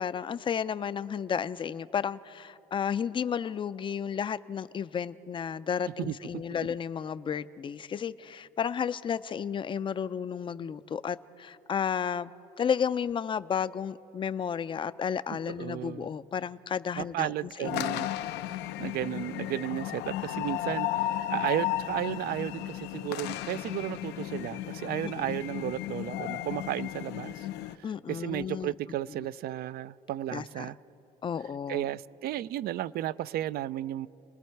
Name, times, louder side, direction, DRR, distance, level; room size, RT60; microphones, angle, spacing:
voice 1, 0.0-12.3 12.6-18.1 25.0-25.4 27.8-28.7 30.3-30.7 31.2-31.8, left 7 dB, 30° left, 0.4 m, -32 dB
voice 2, 6.0-6.4 15.6-16.1 17.0-18.1 18.8-27.5 27.8-30.8 31.7-34.1, right 13 dB, 65° right, 0.4 m, -34 dB
sound 1, 17.6-27.8, left 13 dB, 85° left, 0.6 m, -34 dB
30.0 x 19.5 x 4.6 m
cardioid pair, 110°, 17 cm